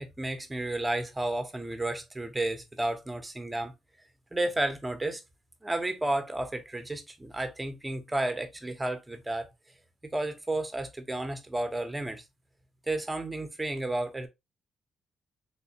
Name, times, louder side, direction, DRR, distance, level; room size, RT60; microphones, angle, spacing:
voice 1, 0.0-3.7 4.3-5.2 5.6-9.5 10.1-12.2 12.9-14.3, right 2 dB, 15° right, 0.8 m, -32 dB
3.6 x 2.7 x 2.8 m
cardioid pair, 90°, 0 cm